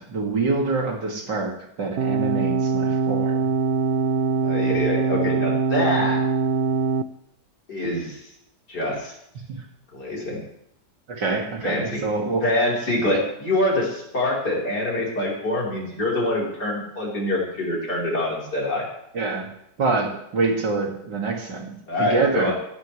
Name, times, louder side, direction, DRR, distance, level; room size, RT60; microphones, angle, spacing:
voice 1, 0.0-3.5 9.5-9.6 11.1-12.5 19.1-19.5 19.8-22.5, right 3 dB, 90° right, 1 dB, 3.0 m, -26 dB
sound 1, 2.0-7.0, right 5 dB, 60° right, 0.7 m, -22 dB
voice 2, 4.4-6.2 7.7-8.2 8.7-9.1 9.9-10.4 11.6-12.0 12.4-18.9 21.9-22.5, left 1 dB, 70° left, -4 dB, 4.8 m, -25 dB
16.5 x 16.5 x 3.3 m, 0.76 s
omnidirectional pair, 1.8 m